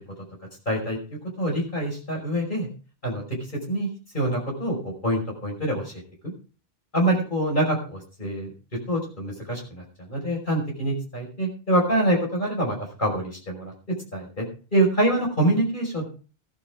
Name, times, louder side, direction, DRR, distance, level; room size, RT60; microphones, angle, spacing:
voice 1, 0.7-1.0 1.4-2.7 3.0-3.4 3.7-3.9 4.1-5.9 6.9-8.5 8.9-13.7 14.1-14.4 14.7-16.1, right 1 dB, 50° left, -1 dB, 5.5 m, -25 dB
16.0 x 11.5 x 3.6 m, 0.36 s
omnidirectional pair, 1.1 m